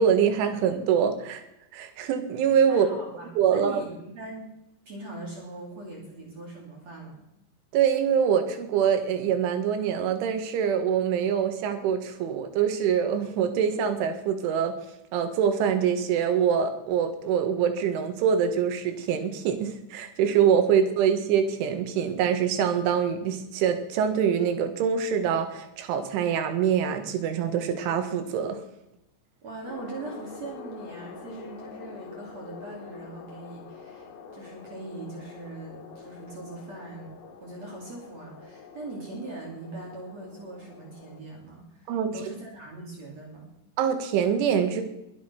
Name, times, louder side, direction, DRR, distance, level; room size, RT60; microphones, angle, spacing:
voice 1, 0.0-1.4 1.7-2.9 3.4-3.8 7.7-14.8 15.1-28.6 41.9-42.1 43.8-44.8, right 8 dB, 75° right, 7 dB, 4.0 m, -24 dB
voice 2, 2.7-4.5 4.9-7.2 20.7-20.8 29.4-37.1 37.4-43.5, right 2 dB, 35° right, -2 dB, 4.0 m, -41 dB
sound 1, 29.7-41.2, left 5 dB, 60° left, 2.9 m, -45 dB
22.5 x 8.7 x 6.0 m, 0.88 s
omnidirectional pair, 5.8 m